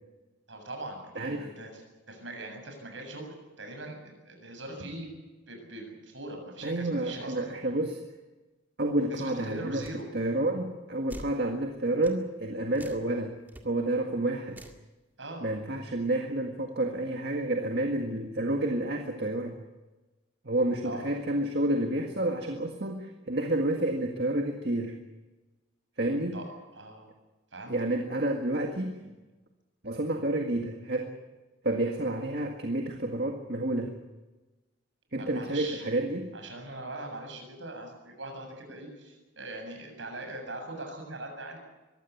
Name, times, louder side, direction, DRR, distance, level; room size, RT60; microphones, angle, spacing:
voice 1, 0.5-1.8 2.1-5.1 5.5-7.5 9.1-10.1 15.2-15.5 20.8-21.1 26.3-26.5 26.7-27.1 27.5-27.7 35.2-35.8 36.3-41.6, right 2 dB, 75° right, 4 dB, 7.4 m, -41 dB
voice 2, 1.2-1.5 6.6-8.0 8.8-9.8 10.1-13.4 13.6-14.6 15.4-19.6 20.5-25.0 26.0-26.4 27.7-29.0 29.8-31.2 31.6-34.0 35.1-36.3, right 1 dB, 55° right, 3 dB, 1.9 m, -29 dB
sound 1, 9.8-10.0 11.1-11.4 12.0-12.2 12.7-13.1 13.5-13.6 14.5-14.8, right 1 dB, 10° right, 2.0 m, -45 dB
23.0 x 15.5 x 9.4 m, 1.2 s
head